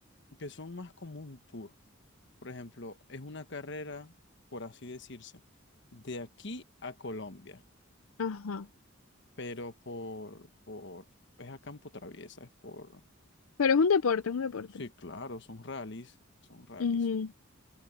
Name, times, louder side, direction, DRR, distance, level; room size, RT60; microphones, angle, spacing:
voice 1, 0.4-1.8 2.4-4.1 4.5-5.4 5.9-7.6 9.4-11.1 11.4-13.0 14.7-16.1 16.5-17.0, left 2 dB, 60° left, 1.3 m, -43 dB
voice 2, 8.2-8.7 13.6-14.7 16.8-17.3, left 5 dB, 90° left, 0.5 m, -27 dB
head